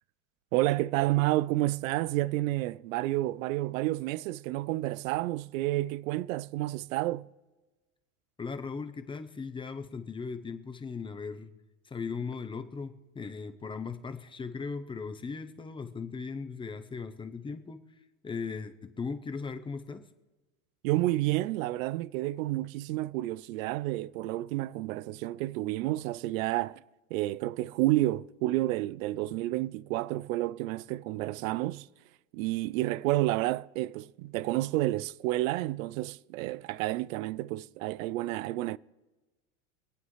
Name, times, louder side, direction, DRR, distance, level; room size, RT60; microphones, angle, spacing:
voice 1, 0.5-7.3 20.8-26.8 27.1-31.9 32.3-38.8, right 17 dB, 75° right, 0.5 m, -30 dB
voice 2, 8.4-11.5 11.8-17.8 18.2-20.0, left 5 dB, 10° left, 0.7 m, -38 dB
26.0 x 8.9 x 3.2 m
supercardioid pair, 130°, 41 cm